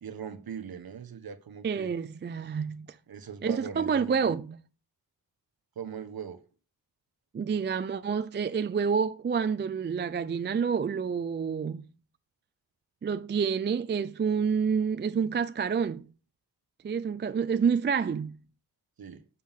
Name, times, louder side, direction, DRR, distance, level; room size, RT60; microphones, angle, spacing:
voice 1, 0.0-1.9 3.1-4.2 5.7-6.4 19.0-19.3, right 7 dB, 55° right, 1.3 m, -40 dB
voice 2, 1.6-3.0 3.4-4.6 7.3-11.8 13.0-16.1 16.8-18.4, right 6 dB, 25° right, 0.4 m, -28 dB
7.3 x 6.6 x 5.8 m
wide cardioid pair, 105°, 42 cm